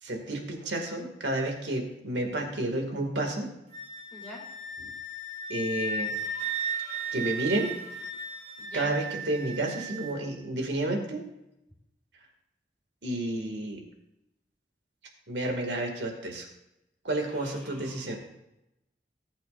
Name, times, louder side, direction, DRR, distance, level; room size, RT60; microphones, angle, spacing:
voice 1, 0.0-3.5 4.8-4.9 5.5-6.1 7.1-7.7 8.7-11.2 13.0-13.8 15.3-16.5 17.0-18.2, right 1 dB, 75° right, 2 dB, 2.2 m, -31 dB
Wind instrument woodwind instrument, 3.7-10.1, right 3 dB, 45° right, 3.4 m, -35 dB
voice 2, 8.6-9.0 17.3-18.0, left 1 dB, 10° left, -4 dB, 3.5 m, -44 dB
18.5 x 8.6 x 2.6 m, 0.89 s
head